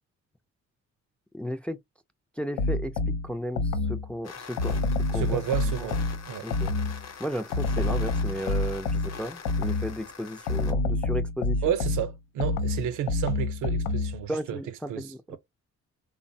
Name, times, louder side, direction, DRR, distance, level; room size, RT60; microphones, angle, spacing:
voice 1, 1.3-1.8 2.4-2.9 3.2-4.8 5.1-5.4 5.8-5.9 6.4-6.7 7.2-11.8 14.3-15.4, equal, 5° left, 0.3 m, -34 dB
sound 1, 2.6-4.1 4.6-7.0 7.5-10.0 10.5-14.2, left 2 dB, 90° left, 0.5 m, -28 dB
sound 2, 4.2-10.7, left 6 dB, 55° left, 0.8 m, -43 dB
voice 2, 5.1-6.5 11.6-14.6 14.9-15.4, right 10 dB, 85° right, 0.6 m, -31 dB
3.3 x 2.1 x 2.6 m
cardioid pair, 90°, 30 cm